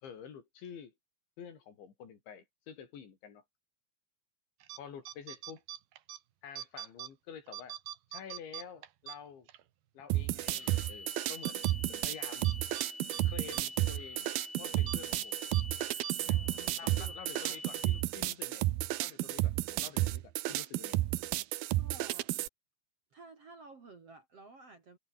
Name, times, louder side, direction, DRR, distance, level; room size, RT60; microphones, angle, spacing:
voice 1, 0.0-0.9 1.4-3.4 4.8-5.6 6.4-7.8 8.1-9.5 10.0-12.5 13.2-14.3 14.6-15.4 16.3-16.4 16.8-18.7 19.0-21.0, left 7 dB, 70° left, 6.1 m, -49 dB
sound 1, 4.6-4.8 5.1-6.2 6.6-7.1 7.5-9.6 10.0-10.1 10.6-10.9 11.4-11.7 12.4-12.9 13.1-13.2 13.5-13.6 14.0-14.1 14.8-15.0 15.5-15.6 16.0-16.1, right 12 dB, 65° right, 3.0 m, -43 dB
sound 2, 10.1-22.5, right 16 dB, 80° right, 2.1 m, -32 dB
sound 3, 10.5-18.0, left 2 dB, 15° left, 2.7 m, -46 dB
voice 2, 16.2-17.7 21.8-22.3 23.1-25.0, right 3 dB, 40° right, 2.7 m, -53 dB
omnidirectional pair, 5.5 m